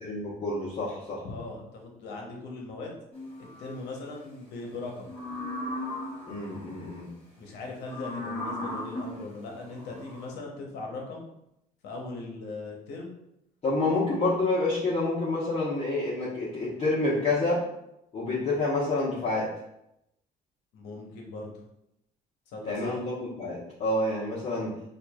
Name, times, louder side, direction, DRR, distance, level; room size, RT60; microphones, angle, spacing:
voice 1, 0.0-1.2 6.3-7.1 13.6-17.6 18.1-19.5 22.6-24.7, left 2 dB, 40° left, -10 dB, 1.0 m, -28 dB
voice 2, 1.2-2.9 3.6-5.1 7.4-11.3 11.8-13.1 13.8-13.9 20.7-21.5 22.5-23.0, left 3 dB, 80° left, 0 dB, 0.9 m, -39 dB
sound 1, 3.1-3.9 5.0-6.5 7.8-10.3, left 1 dB, 5° left, 1.5 m, -37 dB
4.6 x 2.5 x 2.3 m, 0.82 s
cardioid pair, 110°, 17 cm